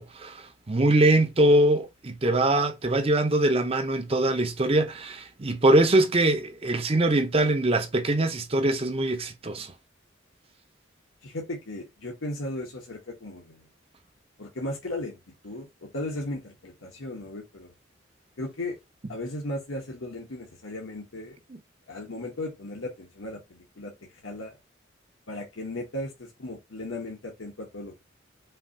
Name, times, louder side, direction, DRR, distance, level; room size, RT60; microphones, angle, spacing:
voice 1, 0.0-9.7 21.5-21.6, right 1 dB, 30° right, 0.7 m, -23 dB
voice 2, 11.2-13.6 14.4-15.2 15.4-17.7 18.4-18.8 19.1-21.3 21.9-23.9 24.2-24.6 25.3-28.0, left 1 dB, 90° left, 1.1 m, -36 dB
5.6 x 2.7 x 2.7 m
head